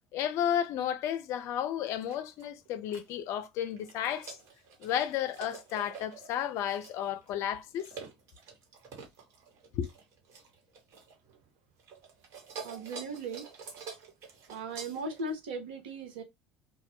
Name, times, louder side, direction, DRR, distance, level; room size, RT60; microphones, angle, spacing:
voice 1, 0.1-4.4 4.8-7.9 9.7-9.9, left 10 dB, 60° left, 0.4 m, -32 dB
sound 1, 1.9-3.1 3.6-11.5 11.8-15.3, right 5 dB, 55° right, 1.1 m, -48 dB
voice 2, 12.6-13.5 14.5-16.2, right 2 dB, 80° right, 0.7 m, -38 dB
2.2 x 2.1 x 2.9 m
hypercardioid pair, 65°, 6 cm